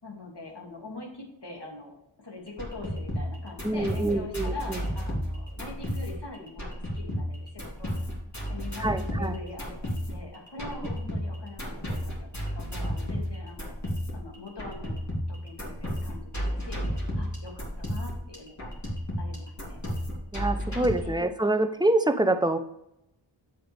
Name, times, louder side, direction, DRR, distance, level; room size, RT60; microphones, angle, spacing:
voice 1, 0.0-6.6 6.9-7.9 8.5-13.7 14.1-15.0 15.3-18.7 19.2-19.8 21.0-21.1, left 2 dB, 60° left, -1 dB, 2.5 m, -43 dB
sound 1, 2.5-21.0, equal, 35° left, 3.0 m, -33 dB
voice 2, 3.6-4.8 8.8-9.3 20.3-22.6, right 2 dB, 10° right, 8 dB, 0.6 m, -26 dB
8.0 x 7.7 x 3.4 m, 0.81 s
wide cardioid pair, 70°, 46 cm